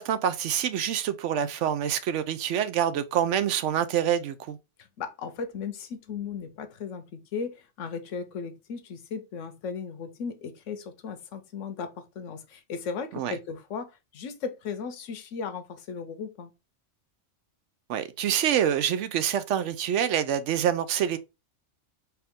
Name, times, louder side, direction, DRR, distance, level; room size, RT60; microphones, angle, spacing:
voice 1, 0.0-4.6 13.1-13.3 17.9-21.2, right 9 dB, 75° right, 0.9 m, -26 dB
voice 2, 4.8-16.5, left 5 dB, 85° left, 1.1 m, -36 dB
4.5 x 2.6 x 3.5 m
omnidirectional pair, 1.2 m